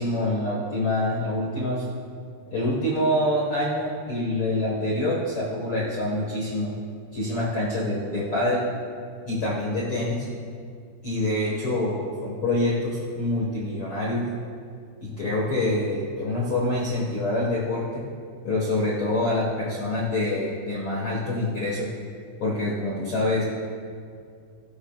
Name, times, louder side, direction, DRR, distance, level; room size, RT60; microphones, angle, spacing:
voice 1, 0.0-1.8 2.5-6.7 7.1-8.6 9.2-10.3 11.0-14.2 15.0-18.0 18.4-21.9 22.4-23.4, left 1 dB, 65° left, -4 dB, 1.3 m, -26 dB
16.5 x 14.5 x 2.4 m, 2.3 s
omnidirectional pair, 4.8 m